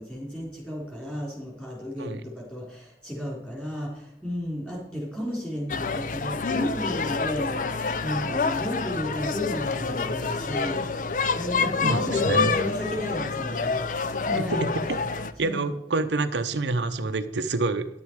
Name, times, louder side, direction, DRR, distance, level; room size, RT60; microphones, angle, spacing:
voice 1, 0.0-10.8 11.4-14.6 15.4-15.6, equal, 5° left, -3 dB, 3.8 m, -33 dB
sound 1, 5.7-15.3, left 4 dB, 45° left, 0.5 m, -27 dB
voice 2, 11.8-12.5 14.3-15.0 15.4-17.9, right 3 dB, 85° right, 9 dB, 0.7 m, -27 dB
10.5 x 8.6 x 4.6 m, 0.77 s
head